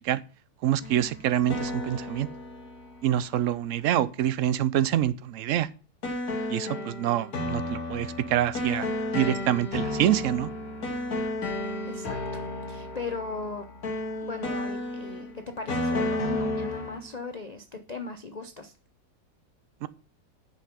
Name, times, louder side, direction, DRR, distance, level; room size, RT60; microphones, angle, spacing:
voice 1, 0.6-2.3 3.0-5.7 6.5-8.9 9.1-10.5 19.8-19.9, right 11 dB, 75° right, 0.7 m, -26 dB
sound 1, 0.8-3.7 6.0-17.1, left 2 dB, 55° left, 1.9 m, -32 dB
voice 2, 11.8-13.6 14.2-18.7, left 3 dB, 85° left, 0.3 m, -38 dB
10.0 x 5.4 x 5.1 m
omnidirectional pair, 1.9 m